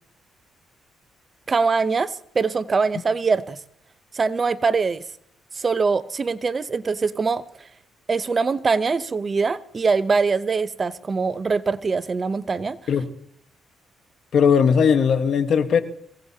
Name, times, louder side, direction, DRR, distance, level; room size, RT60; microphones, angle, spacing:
voice 1, 1.5-3.6 4.1-5.0 5.5-7.4 8.1-12.8, right 4 dB, 35° right, 15 dB, 0.7 m, -23 dB
voice 2, 14.3-15.8, left 6 dB, 60° left, 9 dB, 1.2 m, -18 dB
23.5 x 17.0 x 2.8 m, 0.67 s
cardioid pair, 90°, 0 cm